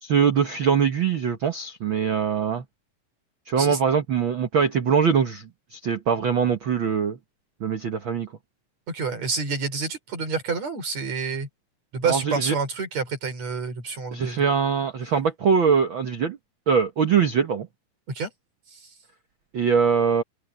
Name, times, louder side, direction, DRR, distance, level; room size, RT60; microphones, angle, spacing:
voice 1, 0.0-2.6 3.5-7.2 7.6-8.3 12.1-12.5 14.1-16.4 16.7-17.7 19.5-20.2, right 6 dB, 85° right, 1.1 m, -22 dB
voice 2, 8.9-11.5 11.9-14.4 18.1-18.3 18.7-18.8, right 4 dB, 45° right, 6.2 m, -28 dB
open air
omnidirectional pair, 4.2 m